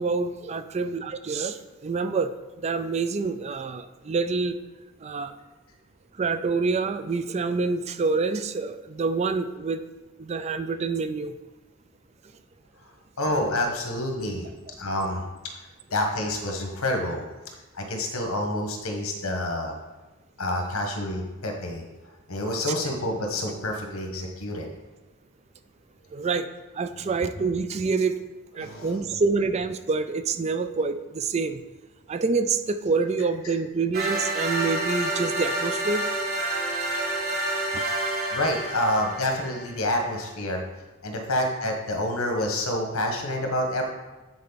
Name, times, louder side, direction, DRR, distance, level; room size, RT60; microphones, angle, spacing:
voice 1, 0.0-2.3 2.6-4.6 5.0-5.3 6.2-9.8 10.2-11.3 26.1-26.5 26.8-28.1 28.6-31.6 32.1-36.0 37.7-37.8, right 4 dB, 30° right, 10 dB, 0.3 m, -27 dB
voice 2, 13.2-14.5 14.8-15.2 15.9-17.2 17.7-19.7 20.4-21.8 22.3-24.7 26.9-27.1 28.6-29.0 33.4-33.5 38.3-40.6 41.0-43.8, left 1 dB, 85° left, 2 dB, 1.4 m, -28 dB
sound 1, 33.9-39.8, right 1 dB, 45° right, 1.3 m, -28 dB
9.6 x 4.5 x 4.1 m, 1.2 s
head